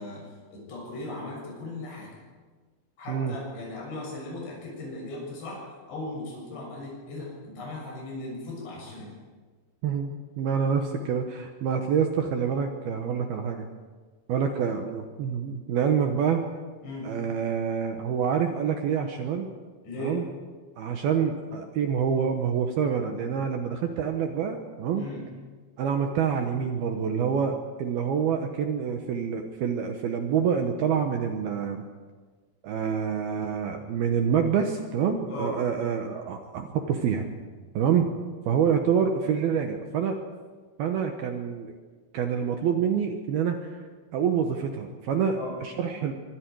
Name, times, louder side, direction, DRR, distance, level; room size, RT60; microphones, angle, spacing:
voice 1, 0.0-2.2 3.0-9.1 16.8-17.1 19.8-20.2 25.0-25.2 35.3-35.6 45.4-45.6, left 2 dB, 55° left, -3 dB, 9.1 m, -37 dB
voice 2, 9.8-13.7 14.3-16.4 17.0-19.5 20.0-20.3 20.8-25.0 25.8-31.8 32.6-37.3 37.7-38.1 38.5-40.2 40.8-41.7 42.1-43.8 44.1-46.1, right 7 dB, 75° right, 4 dB, 2.3 m, -27 dB
25.0 x 23.5 x 4.8 m, 1.4 s
omnidirectional pair, 6.0 m